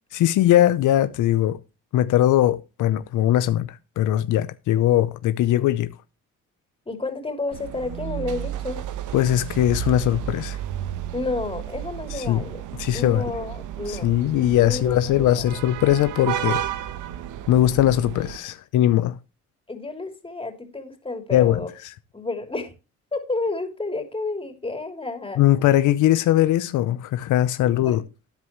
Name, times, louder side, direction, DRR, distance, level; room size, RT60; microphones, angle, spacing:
voice 1, 0.1-1.6 1.9-5.9 9.1-10.6 12.1-12.4 12.8-13.2 13.9-16.6 17.5-19.2 21.3-21.6 25.4-28.0, left 13 dB, 80° left, 0.7 m, -20 dB
voice 2, 6.8-8.8 11.1-12.6 12.9-14.1 14.6-15.5 19.7-21.7 22.1-22.7 23.1-25.4 27.8-28.0, left 3 dB, 20° left, 3.2 m, -30 dB
sound 1, 7.5-18.4, right 11 dB, 85° right, 1.1 m, -32 dB
13.0 x 9.5 x 3.1 m
cardioid pair, 90°, 30 cm